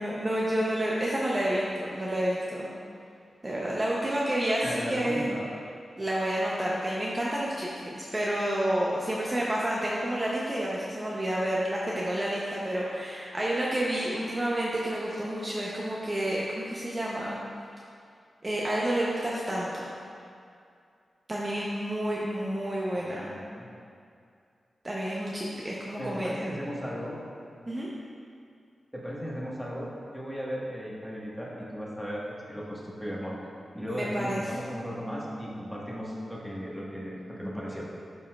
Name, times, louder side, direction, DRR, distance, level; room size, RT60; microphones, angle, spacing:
voice 1, 0.0-2.7 3.4-5.3 6.0-17.4 18.4-19.9 21.3-23.3 24.8-26.5 27.7-27.9 33.9-34.4, right 1 dB, 25° right, -5 dB, 0.8 m, -29 dB
voice 2, 4.6-5.5 23.1-23.7 26.0-27.2 28.9-33.4 33.7-37.9, equal, ahead, -5 dB, 1.5 m, -36 dB
11.5 x 4.3 x 2.4 m, 2.4 s
cardioid pair, 70°, 0 cm